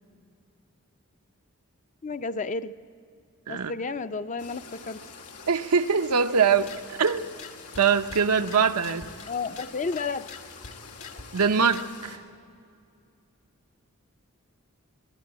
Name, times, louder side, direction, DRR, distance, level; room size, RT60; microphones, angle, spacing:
voice 1, 2.0-2.7 3.5-5.0 9.3-10.3, left 4 dB, 35° left, 11 dB, 0.5 m, -31 dB
sound 1, 4.4-12.2, left 4 dB, 90° left, 2.0 m, -46 dB
voice 2, 5.5-7.3 7.8-9.1 11.3-12.2, right 6 dB, 85° right, 8 dB, 0.7 m, -23 dB
sound 2, 6.5-12.0, left 5 dB, 70° left, 1.5 m, -45 dB
24.0 x 12.5 x 8.9 m, 2.4 s
head